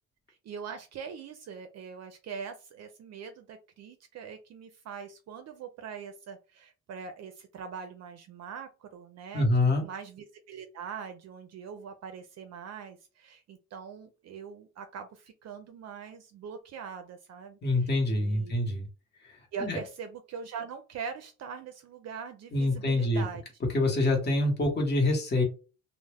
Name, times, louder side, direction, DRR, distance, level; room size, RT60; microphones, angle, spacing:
voice 1, 0.3-18.7 19.5-23.4, right 6 dB, 60° right, 7 dB, 0.5 m, -42 dB
voice 2, 9.3-9.8 17.6-18.9 19.2-19.8 22.5-23.2 23.7-25.4, left 2 dB, 35° left, 1 dB, 1.0 m, -26 dB
2.1 x 2.1 x 3.3 m, 0.33 s
cardioid pair, 90°, 30 cm